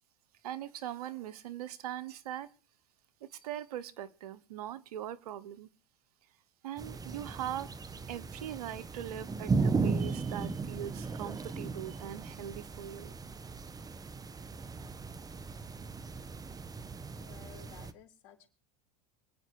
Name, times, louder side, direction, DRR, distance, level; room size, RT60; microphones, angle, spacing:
voice 1, 0.4-2.5 3.2-5.7 6.6-7.7 8.1-13.1, right 11 dB, 85° right, 1.2 m, -41 dB
sound 1, 6.8-17.9, right 4 dB, 20° right, 1.3 m, -36 dB
voice 2, 17.2-18.5, left 10 dB, 60° left, 4.1 m, -55 dB
25.0 x 9.9 x 4.7 m
hypercardioid pair, 100°, 19 cm